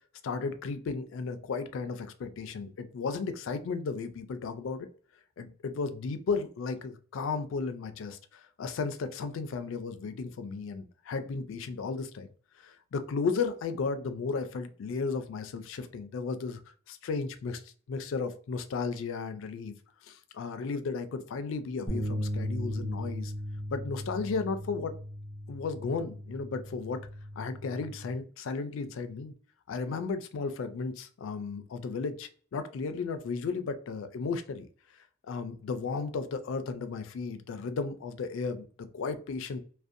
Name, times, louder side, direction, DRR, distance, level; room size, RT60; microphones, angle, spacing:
voice 1, 0.2-4.9 5.4-12.3 12.6-16.6 16.9-17.6 17.9-19.7 20.0-23.3 23.7-24.9 25.5-27.0 27.4-29.3 29.7-34.7 35.3-39.6, left 4 dB, 65° left, 10 dB, 0.3 m, -34 dB
sound 1, 21.9-28.1, equal, 10° left, 0.6 m, -37 dB
2.5 x 2.1 x 2.5 m, 0.43 s
head